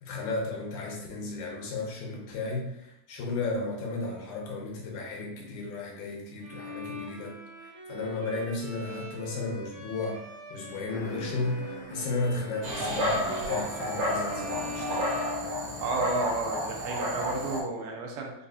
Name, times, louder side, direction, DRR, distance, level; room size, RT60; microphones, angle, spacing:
voice 1, 0.0-15.1, left 3 dB, 80° left, -1 dB, 2.3 m, -34 dB
Bowed string instrument, 6.4-16.2, equal, 50° right, 1.1 m, -42 dB
sound 1, 10.9-15.8, right 1 dB, 65° left, 1.0 m, -45 dB
Dog, 12.6-17.6, equal, 70° right, 2.1 m, -31 dB
voice 2, 15.8-18.3, right 3 dB, 90° right, 1 dB, 2.2 m, -32 dB
5.5 x 2.4 x 2.6 m, 0.83 s
omnidirectional pair, 3.5 m